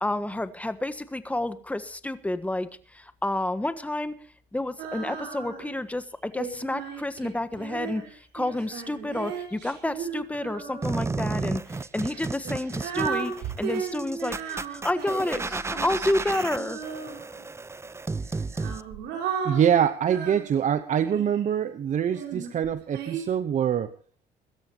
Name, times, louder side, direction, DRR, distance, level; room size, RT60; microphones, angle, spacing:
voice 1, 0.0-4.1 4.5-16.8, left 1 dB, 10° left, 11 dB, 1.4 m, -30 dB
Female singing, 4.8-5.8 6.4-11.2 12.0-17.5 18.3-21.4 22.1-23.2, right 6 dB, 85° right, 4.9 m, -35 dB
sound 1, 10.8-18.8, right 3 dB, 15° right, 0.7 m, -33 dB
voice 2, 19.4-23.9, right 9 dB, 45° right, 12 dB, 1.0 m, -24 dB
23.5 x 13.0 x 3.0 m, 0.43 s
cardioid pair, 110°, 17 cm